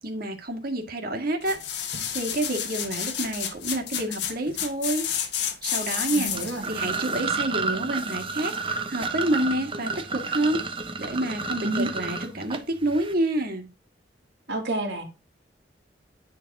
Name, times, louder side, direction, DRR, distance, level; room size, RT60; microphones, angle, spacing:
voice 1, 0.0-1.6 2.1-5.0 5.6-6.3 6.7-10.6 11.0-13.7, right 1 dB, 55° right, 2.0 m, -28 dB
sound 1, 1.4-6.7 7.1-7.2, left 9 dB, 70° left, 1.6 m, -30 dB
voice 2, 6.1-6.7 11.6-11.9 14.5-15.0, right 2 dB, 75° right, 2.4 m, -29 dB
sound 2, 6.3-13.1, right 4 dB, 30° right, 1.2 m, -31 dB
10.5 x 4.0 x 6.0 m
head